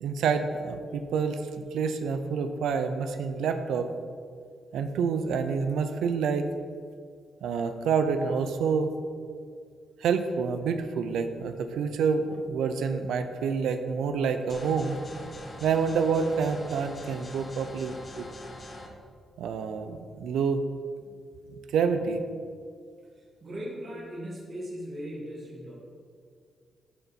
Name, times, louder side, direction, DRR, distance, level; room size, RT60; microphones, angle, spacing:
voice 1, 0.0-1.4 1.7-3.9 4.7-6.5 7.4-8.9 10.0-15.0 15.6-18.3 19.4-20.6 21.7-22.2, right 5 dB, 90° right, 8 dB, 0.4 m, -28 dB
sound 1, 14.5-18.9, left 1 dB, 25° left, 1.0 m, -43 dB
voice 2, 23.4-25.7, equal, 35° right, -5 dB, 1.9 m, -38 dB
11.5 x 3.9 x 4.1 m, 2.2 s
cardioid pair, 115°, 0 cm